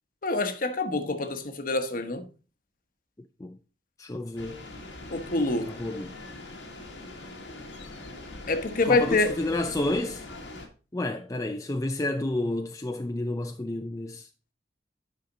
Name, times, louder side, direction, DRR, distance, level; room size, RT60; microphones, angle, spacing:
voice 1, 0.2-2.3 5.1-5.7 8.5-9.4, left 3 dB, 50° left, 1.0 m, -26 dB
voice 2, 4.0-4.6 5.7-6.1 8.9-10.2 10.9-14.3, left 1 dB, 20° left, 0.5 m, -30 dB
sound 1, 4.4-10.7, left 2 dB, 90° left, 1.7 m, -42 dB
9.9 x 5.7 x 3.8 m
head